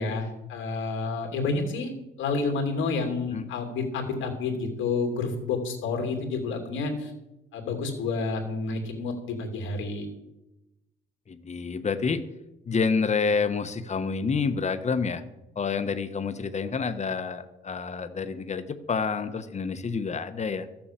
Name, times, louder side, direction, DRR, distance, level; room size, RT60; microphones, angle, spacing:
voice 1, 0.0-1.9 2.2-7.1 7.5-10.1, left 4 dB, 80° left, 2 dB, 2.8 m, -29 dB
voice 2, 11.3-12.2 12.7-15.2 15.6-20.7, left 5 dB, 35° left, 11 dB, 1.1 m, -28 dB
13.5 x 7.2 x 7.4 m, 0.94 s
cardioid pair, 90°, 20 cm